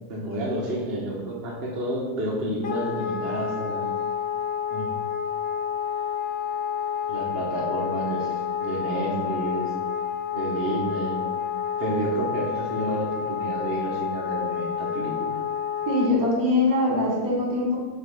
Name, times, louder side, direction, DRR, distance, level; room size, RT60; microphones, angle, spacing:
voice 1, 0.1-3.9 4.7-4.9 7.1-9.7 10.3-11.2 11.8-15.4, right 1 dB, 45° right, -3 dB, 1.1 m, -30 dB
Wind instrument woodwind instrument, 2.6-16.1, left 8 dB, 75° left, 0.5 m, -29 dB
voice 2, 15.9-17.8, left 2 dB, 65° right, -3 dB, 1.9 m, -22 dB
5.6 x 3.5 x 5.4 m, 1.5 s
omnidirectional pair, 1.7 m